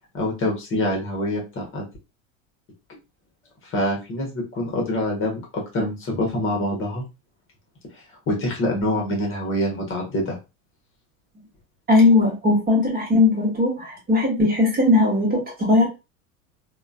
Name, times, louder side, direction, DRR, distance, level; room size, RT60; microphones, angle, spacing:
voice 1, 0.1-1.8 3.6-5.4 5.7-7.0 8.3-10.4, left 1 dB, 30° left, 0 dB, 1.1 m, -25 dB
voice 2, 11.9-15.9, left 2 dB, 20° right, -1 dB, 1.2 m, -18 dB
3.6 x 2.3 x 2.2 m, 0.26 s
figure-of-eight pair, 75°, 43 cm